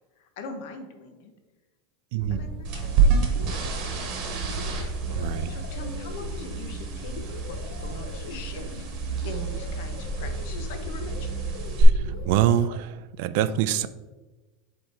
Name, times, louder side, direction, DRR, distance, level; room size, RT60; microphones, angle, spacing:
voice 1, 0.2-1.3 2.3-4.4 5.5-8.7 9.2-11.3, left 3 dB, 60° left, 6 dB, 1.0 m, -42 dB
voice 2, 2.1-2.5 5.1-5.5 11.8-11.9 12.3-13.9, right 11 dB, 50° right, 13 dB, 0.3 m, -25 dB
sound 1, 2.2-12.3, right 3 dB, 20° right, 1.5 m, -34 dB
sound 2, 2.6-11.8, right 6 dB, 35° right, 1.2 m, -30 dB
sound 3, 3.2-12.8, left 6 dB, 80° left, 0.6 m, -44 dB
7.6 x 3.4 x 4.3 m, 1.2 s
supercardioid pair, 170°, 0 cm